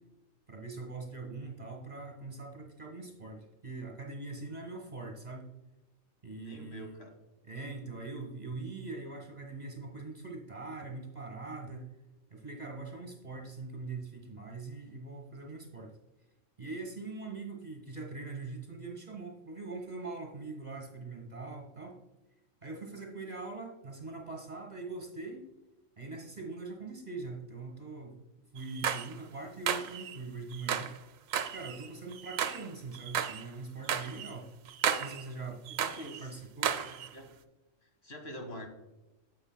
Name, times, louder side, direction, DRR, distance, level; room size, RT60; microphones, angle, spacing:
voice 1, 0.5-5.4 6.2-7.1 7.4-11.9 12.3-15.9 16.6-22.0 22.6-25.4 26.0-28.2 28.5-30.9 31.5-34.5 35.0-35.6 36.2-37.1, right 3 dB, 35° right, 1 dB, 1.2 m, -42 dB
voice 2, 6.4-7.2 35.7-36.4 37.1-37.4 37.8-38.7, equal, 50° left, 4 dB, 1.5 m, -45 dB
sound 1, 28.6-29.1 29.7-30.2 30.5-31.0 31.3-32.7 32.9-33.4 33.9-34.3 34.7-35.2 35.7-36.2 36.6-37.1, right 8 dB, 85° right, 1.0 m, -33 dB
9.8 x 7.4 x 2.2 m, 1.0 s
omnidirectional pair, 1.4 m